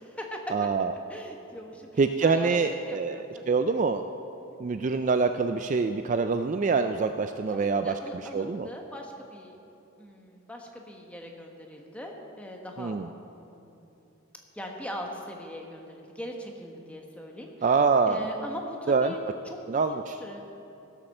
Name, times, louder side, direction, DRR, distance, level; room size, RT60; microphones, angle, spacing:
voice 1, 0.0-0.4 1.1-3.5 4.4-4.6 7.5-9.6 10.0-13.0 13.3-14.0 14.5-17.8 18.0-19.2 19.4-20.6, equal, 5° left, 1 dB, 1.2 m, -41 dB
voice 2, 0.5-0.9 2.0-3.2 3.5-4.1 4.6-7.9 8.3-8.7 12.8-13.1 17.6-18.3 18.9-19.1 19.7-20.2, right 4 dB, 35° right, 8 dB, 0.3 m, -25 dB
15.5 x 7.3 x 6.5 m, 2.9 s
head